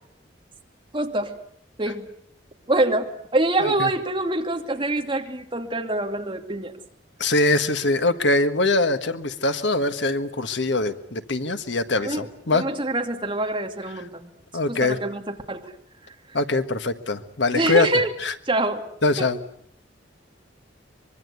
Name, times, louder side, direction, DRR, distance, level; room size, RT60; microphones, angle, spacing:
voice 1, 0.9-1.4 1.8-2.1 2.7-6.7 12.0-14.3 14.7-15.7 16.1-16.2 17.5-18.1 18.4-18.8 19.2-19.3, right 2 dB, 25° right, 3 dB, 2.6 m, -25 dB
voice 2, 7.2-12.7 14.5-15.0 16.3-17.9 18.2-18.3 19.0-19.4, left 2 dB, 70° left, 9 dB, 1.5 m, -23 dB
24.5 x 23.5 x 8.1 m, 0.64 s
head